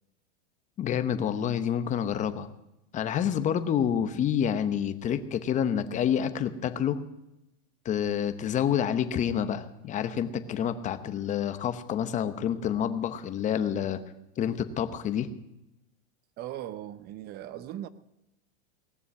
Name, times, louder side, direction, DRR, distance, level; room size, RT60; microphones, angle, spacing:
voice 1, 0.8-2.5 2.9-7.0 7.8-14.0 14.4-15.3, left 9 dB, 25° left, 1.0 m, -28 dB
voice 2, 16.4-17.9, right 12 dB, 30° right, 0.7 m, -38 dB
18.5 x 7.1 x 9.5 m
supercardioid pair, 145°, 32 cm